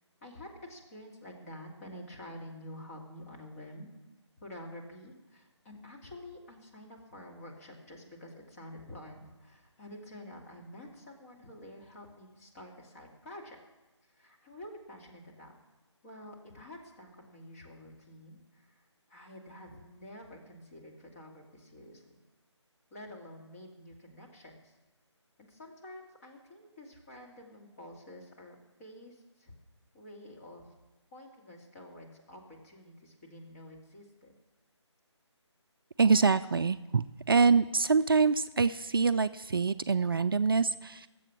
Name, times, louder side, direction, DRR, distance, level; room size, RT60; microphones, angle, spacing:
voice 1, 0.2-3.9 4.4-13.6 14.2-15.5 16.0-18.8 19.1-22.2 22.9-24.7 25.4-29.5 29.9-30.6 31.1-34.3, left 1 dB, 30° left, -1 dB, 2.5 m, -49 dB
voice 2, 36.0-41.1, right 4 dB, 50° right, 12 dB, 0.4 m, -25 dB
21.5 x 7.7 x 6.1 m, 1.1 s
figure-of-eight pair, 155°, 15 cm